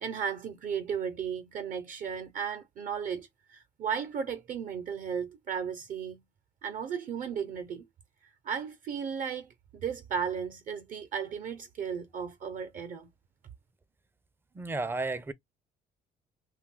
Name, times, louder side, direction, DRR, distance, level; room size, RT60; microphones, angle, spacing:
voice 1, 0.0-6.2 6.6-7.9 8.4-13.1, right 7 dB, 50° right, 0.6 m, -35 dB
voice 2, 14.6-15.3, right 3 dB, 15° right, 0.4 m, -32 dB
2.6 x 2.2 x 3.7 m
cardioid pair, 110°, 17 cm